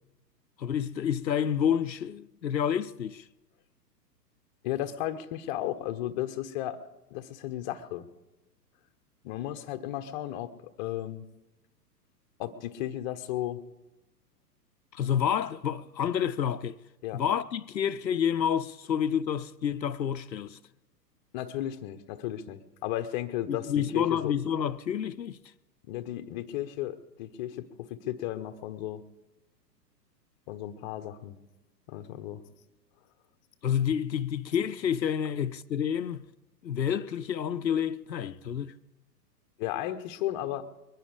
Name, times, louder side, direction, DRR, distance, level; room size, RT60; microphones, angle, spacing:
voice 1, 0.6-3.2 14.9-16.8 17.1-20.6 23.5-25.4 33.6-36.3 36.6-38.7, left 8 dB, 90° left, 0.6 m, -29 dB
voice 2, 4.6-6.8 7.1-8.1 9.2-10.5 10.8-11.3 12.4-13.6 17.0-17.2 21.3-24.3 25.9-29.0 30.5-31.4 31.9-32.4 39.6-40.7, left 12 dB, 25° left, 0.7 m, -34 dB
22.5 x 10.0 x 4.9 m
figure-of-eight pair, 115°, 50 cm